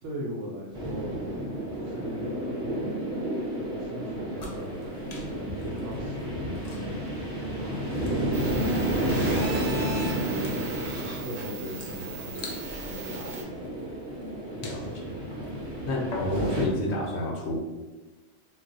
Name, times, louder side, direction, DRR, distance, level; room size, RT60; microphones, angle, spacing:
voice 1, 0.0-1.3 1.7-3.0 3.6-7.0 7.6-10.5 11.0-12.5 12.8-13.9 16.5-16.6, equal, 70° right, -2 dB, 1.0 m, -39 dB
sound 1, 0.7-16.6, right 1 dB, 25° right, 1.2 m, -31 dB
sound 2, 4.3-16.8, left 2 dB, 50° left, 0.5 m, -47 dB
sound 3, 8.3-13.4, right 2 dB, 45° right, 1.2 m, -38 dB
voice 2, 14.5-15.0 15.8-17.6, left 1 dB, 65° left, -2 dB, 0.9 m, -30 dB
2.5 x 2.3 x 3.9 m, 1.2 s
omnidirectional pair, 1.3 m